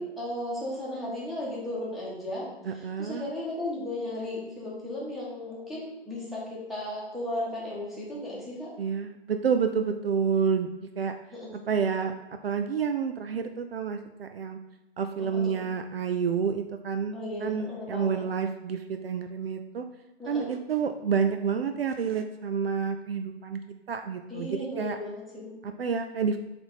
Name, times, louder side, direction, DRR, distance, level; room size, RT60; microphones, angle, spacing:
voice 1, 0.0-2.5 2.7-8.7 11.3-11.6 15.2-15.5 17.1-18.3 20.2-20.5 24.3-25.6, left 1 dB, ahead, -7 dB, 1.5 m, -35 dB
voice 2, 2.7-3.2 8.8-10.7 11.0-11.1 11.7-12.1 12.4-14.6 15.0-17.1 17.4-19.8 20.3-23.6 23.9-25.0 25.6-26.4, right 6 dB, 60° right, 7 dB, 0.5 m, -29 dB
6.7 x 3.6 x 4.1 m, 1.0 s
figure-of-eight pair, 125°, 33 cm